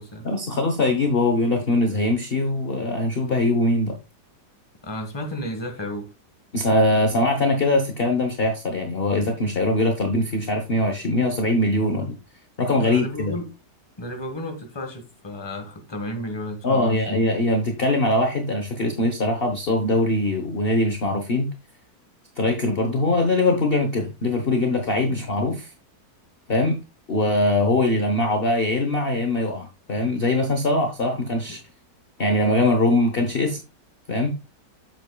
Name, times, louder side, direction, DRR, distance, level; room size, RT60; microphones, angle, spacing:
voice 1, 0.2-4.0 6.5-12.2 12.6-13.3 16.6-21.5 22.4-25.7 26.5-26.8 27.1-31.6 32.2-33.6 34.1-34.3, left 2 dB, 40° left, 1.1 m, -22 dB
voice 2, 4.8-6.1 12.8-13.5 14.0-17.3, left 1 dB, 15° left, 1.3 m, -33 dB
8.1 x 7.6 x 2.3 m
omnidirectional pair, 1.9 m